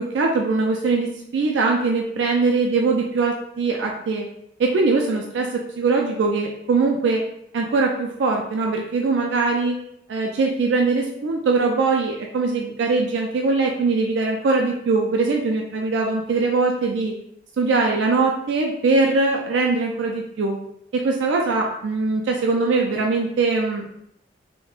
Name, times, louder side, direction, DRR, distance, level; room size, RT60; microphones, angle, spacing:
voice 1, 0.0-4.3 4.6-7.2 7.5-9.8 10.1-17.1 17.6-20.6 20.9-23.9, right 3 dB, 80° right, 1 dB, 0.3 m, -21 dB
3.5 x 2.1 x 2.4 m, 0.75 s
head